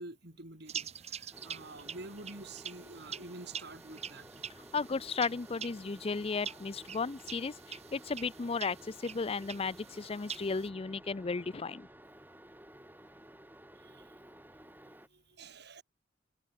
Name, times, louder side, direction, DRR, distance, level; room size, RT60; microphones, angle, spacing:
voice 1, 0.0-4.5 13.7-14.3 14.8-15.8, right 2 dB, 60° right, 5.1 m, -49 dB
sound 1, 0.7-10.7, right 8 dB, 35° right, 1.4 m, -46 dB
sound 2, 1.3-15.1, right 1 dB, 10° right, 6.0 m, -54 dB
voice 2, 4.7-11.9, left 4 dB, 30° left, 0.5 m, -35 dB
head